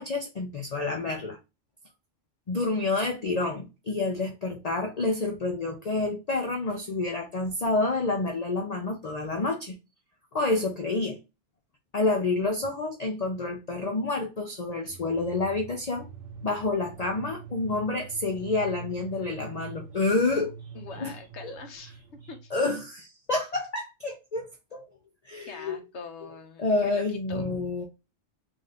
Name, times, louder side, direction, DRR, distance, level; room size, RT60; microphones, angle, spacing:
voice 1, 0.0-1.4 2.5-9.8 10.3-11.2 11.9-16.1 16.4-20.5 21.0-21.1 21.4-21.6 22.5-24.8 25.2-25.8 26.6-27.9, left 3 dB, 40° left, 0.6 m, -28 dB
sound 1, 14.9-22.7, right 7 dB, 75° right, 1.0 m, -44 dB
voice 2, 20.7-21.9 22.3-22.5 25.4-27.0 27.3-27.4, left 4 dB, 65° left, 1.1 m, -43 dB
3.7 x 2.6 x 3.3 m
omnidirectional pair, 1.3 m